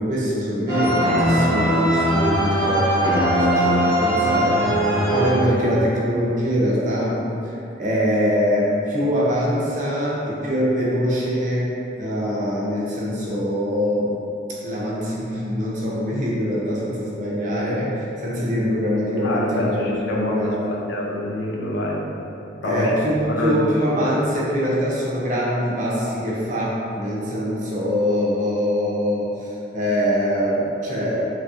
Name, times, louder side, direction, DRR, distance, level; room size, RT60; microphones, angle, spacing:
voice 1, 0.0-4.7 5.1-11.7 12.0-14.1 14.5-20.7 22.6-31.2, equal, 45° right, -6 dB, 0.6 m, -23 dB
sound 1, 0.7-5.9, equal, 60° left, 1.4 m, -20 dB
voice 2, 19.2-22.2 22.6-23.0 23.3-23.7, left 1 dB, 80° left, -2 dB, 0.5 m, -26 dB
3.1 x 2.7 x 2.4 m, 2.8 s
head